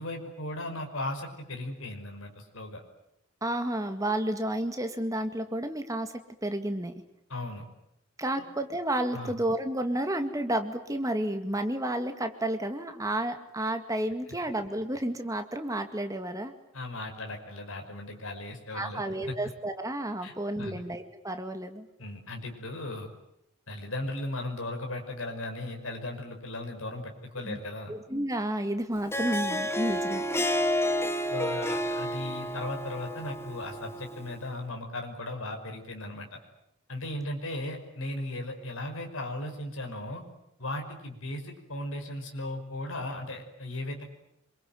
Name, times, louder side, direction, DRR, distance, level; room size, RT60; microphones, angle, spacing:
voice 1, 0.0-2.8 7.3-7.6 8.4-8.5 9.1-9.3 16.7-19.0 20.2-20.8 22.0-23.1 23.7-27.9 31.3-36.4 36.9-40.2 40.6-44.1, left 1 dB, 70° left, 3 dB, 5.6 m, -37 dB
voice 2, 3.4-7.0 8.2-16.5 18.7-21.9 27.5-27.6 27.9-30.2, right 1 dB, 15° right, 7 dB, 2.1 m, -31 dB
Harp, 28.9-34.4, equal, 10° left, 1.3 m, -30 dB
27.0 x 22.5 x 9.4 m, 0.80 s
head